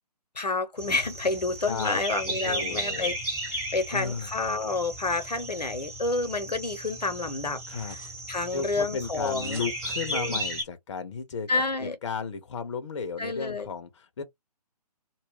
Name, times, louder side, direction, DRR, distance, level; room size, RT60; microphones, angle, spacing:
voice 1, 0.4-3.1 3.7-8.0 8.3-9.6 10.1-10.4 11.5-12.0 13.2-13.7, left 3 dB, 85° left, 0.8 m, -29 dB
sound 1, 0.8-10.6, right 1 dB, 10° right, 1.0 m, -35 dB
voice 2, 1.7-2.0 2.3-3.1 3.9-4.3 7.7-8.0 8.5-14.2, left 5 dB, 45° left, 0.6 m, -34 dB
2.3 x 2.1 x 3.4 m
figure-of-eight pair, 135°, 21 cm